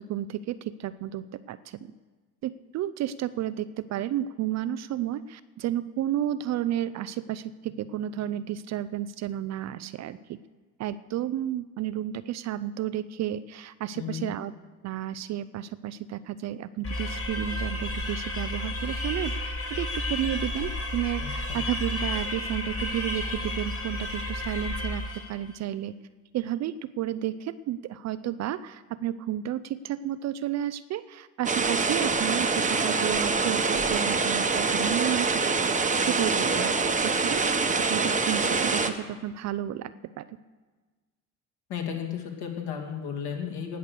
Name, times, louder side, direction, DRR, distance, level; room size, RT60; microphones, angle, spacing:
voice 1, 0.0-1.9 2.4-10.4 10.8-14.5 14.8-25.0 25.3-25.9 26.3-37.4 37.9-40.4, right 11 dB, 35° right, 15 dB, 0.5 m, -32 dB
voice 2, 13.9-14.3 21.2-21.6 41.7-43.8, left 8 dB, 55° left, 1 dB, 2.8 m, -34 dB
sound 1, 16.8-25.4, left 1 dB, 30° left, 2.4 m, -32 dB
sound 2, 31.4-38.9, right 4 dB, 15° right, 1.1 m, -25 dB
18.5 x 6.6 x 6.7 m, 1.3 s
hypercardioid pair, 60°, 47 cm